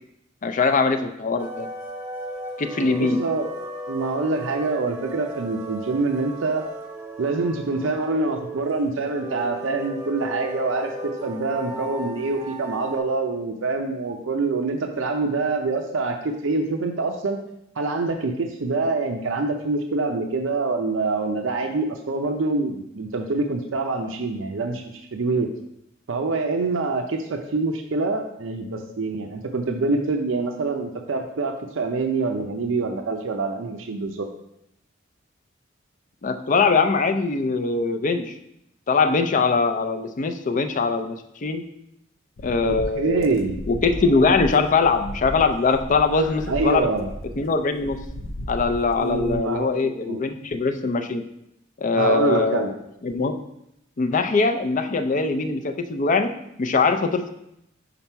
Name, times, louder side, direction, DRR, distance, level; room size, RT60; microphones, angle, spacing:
voice 1, 0.4-1.7 2.6-3.2 36.2-38.3 38.9-41.6 42.4-43.3 43.7-46.9 47.4-48.0 48.5-51.2 51.8-52.7 53.0-53.4 54.0-56.3 56.6-57.3, left 4 dB, 40° left, 7 dB, 0.5 m, -22 dB
sound 1, 1.4-13.0, right 1 dB, 10° right, 0.7 m, -36 dB
voice 2, 2.8-3.5 3.9-6.7 7.2-17.4 17.8-25.5 26.1-34.3 42.6-43.6 46.5-47.1 49.0-50.2 51.9-52.7, right 3 dB, 90° right, 4 dB, 0.5 m, -25 dB
sound 2, 42.4-49.4, left 1 dB, 90° left, 0.6 m, -35 dB
5.8 x 4.0 x 4.5 m, 0.80 s
head